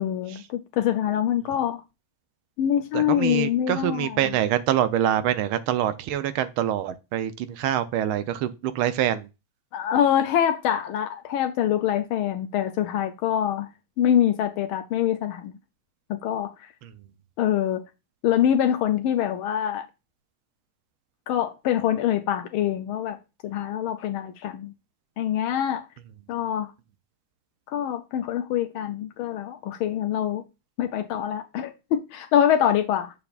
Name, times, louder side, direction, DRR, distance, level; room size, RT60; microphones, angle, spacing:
voice 1, 0.0-1.8 2.6-4.4 9.7-13.7 14.0-15.6 16.1-16.7 17.4-17.8 18.2-19.8 21.3-23.2 23.4-24.7 25.2-25.9 26.3-26.7 27.7-30.4 30.8-33.1, left 10 dB, 80° left, 1.4 m, -25 dB
voice 2, 2.9-9.3, right 11 dB, 85° right, 1.5 m, -25 dB
6.9 x 6.8 x 2.4 m
omnidirectional pair, 2.3 m